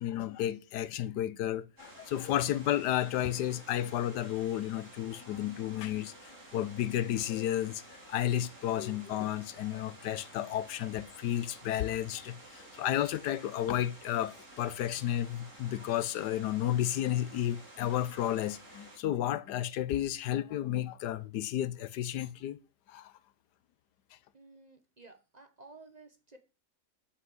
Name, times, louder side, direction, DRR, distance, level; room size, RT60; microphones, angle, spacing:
voice 1, 0.0-22.6 22.9-23.1, left 12 dB, 90° left, 1.3 m, -32 dB
sound 1, 1.8-19.0, right 1 dB, 45° right, 3.0 m, -52 dB
voice 2, 24.3-26.4, right 3 dB, 30° right, 1.1 m, -54 dB
8.1 x 5.8 x 8.0 m
omnidirectional pair, 1.8 m